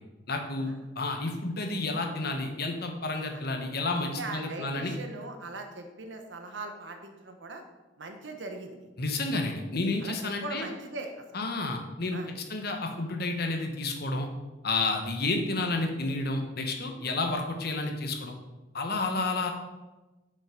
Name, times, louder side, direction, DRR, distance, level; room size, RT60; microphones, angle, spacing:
voice 1, 0.3-0.7 1.0-4.9 9.0-10.6 11.3-14.3 14.6-18.3 18.7-19.5, left 2 dB, 60° left, 4 dB, 1.2 m, -30 dB
voice 2, 4.0-7.6 8.0-8.9 10.0-11.2 12.1-12.3, right 2 dB, 75° right, 5 dB, 1.1 m, -40 dB
7.0 x 5.6 x 5.2 m, 1.1 s
head